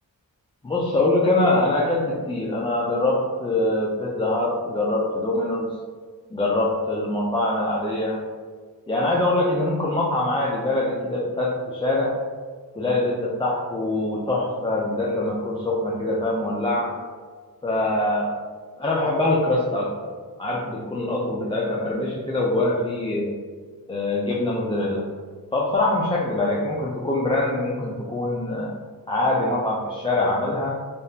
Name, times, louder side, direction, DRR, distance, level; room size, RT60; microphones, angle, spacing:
voice 1, 0.6-5.8 6.3-8.2 8.9-12.1 12.8-16.9 17.6-18.3 18.8-20.1 20.4-23.4 23.9-25.0 25.5-28.7 29.1-30.7, left 2 dB, 15° left, -5 dB, 0.3 m, -24 dB
3.5 x 2.3 x 2.7 m, 1.5 s
wide cardioid pair, 105°, 36 cm